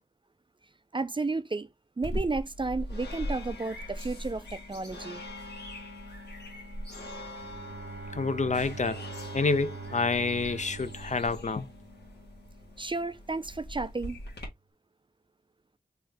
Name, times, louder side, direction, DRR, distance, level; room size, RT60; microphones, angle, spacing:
voice 1, 0.9-1.7 2.0-5.2 12.8-14.2, right 3 dB, 30° right, 0.4 m, -32 dB
sound 1, 2.0-14.5, left 1 dB, 90° left, 1.5 m, -41 dB
Bowed string instrument, 7.3-12.3, right 4 dB, 85° right, 0.6 m, -44 dB
voice 2, 8.1-9.0 9.3-11.7, left 4 dB, 45° left, 0.5 m, -28 dB
3.5 x 2.7 x 3.3 m
wide cardioid pair, 50°, 17 cm